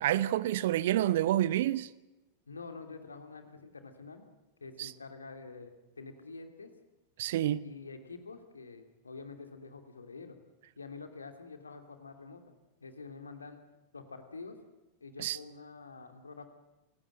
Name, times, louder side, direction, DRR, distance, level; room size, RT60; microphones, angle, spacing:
voice 1, 0.0-1.9 4.8-4.9 7.2-7.6 15.2-15.4, right 13 dB, 55° right, 0.8 m, -28 dB
voice 2, 2.5-4.2 4.6-6.7 7.6-10.4 10.8-12.5 12.8-13.6 13.9-14.6 15.0-16.5, left 4 dB, 75° left, 2.8 m, -47 dB
28.0 x 17.0 x 7.9 m
figure-of-eight pair, 90°, 0 cm